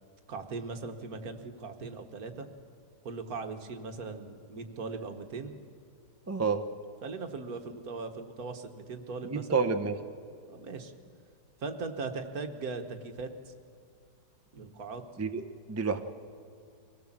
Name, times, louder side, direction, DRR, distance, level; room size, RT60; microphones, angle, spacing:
voice 1, 0.3-2.5 3.0-5.5 7.0-9.7 10.5-10.9 11.6-13.5 14.5-15.0, right 4 dB, 60° right, 6 dB, 1.8 m, -39 dB
voice 2, 6.3-6.6 9.2-10.0 15.2-15.4 15.7-16.0, right 5 dB, 25° right, 7 dB, 0.3 m, -29 dB
24.0 x 17.5 x 7.5 m, 2.3 s
omnidirectional pair, 1.8 m